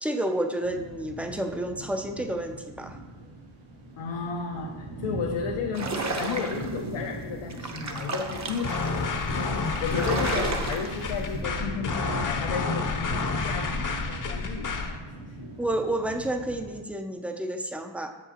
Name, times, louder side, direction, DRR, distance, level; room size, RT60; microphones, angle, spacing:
voice 1, 0.0-3.0 15.6-18.1, right 1 dB, 5° right, 5 dB, 0.4 m, -30 dB
sound 1, 0.6-16.8, right 1 dB, 85° right, 1.6 m, -39 dB
voice 2, 4.0-8.8 9.8-15.0, left 5 dB, 85° left, 1 dB, 0.8 m, -33 dB
sound 2, 5.7-6.8 7.4-8.9 9.4-9.5 9.7-11.1, right 3 dB, 35° right, 0.7 m, -32 dB
sound 3, 8.6-15.0, left 4 dB, 40° left, 0.7 m, -30 dB
8.1 x 6.8 x 2.9 m, 1.2 s
wide cardioid pair, 120°, 49 cm